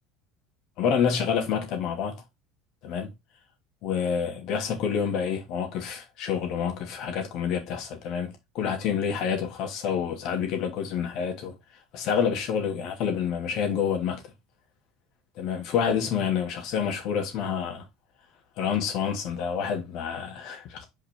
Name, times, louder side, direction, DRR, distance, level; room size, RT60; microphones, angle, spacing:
voice 1, 0.8-2.2 2.8-3.1 3.8-11.5 11.9-14.2 15.4-17.8 18.6-20.8, left 7 dB, 55° left, 2.4 m, -28 dB
5.7 x 4.7 x 3.7 m
hypercardioid pair, 70°, 0 cm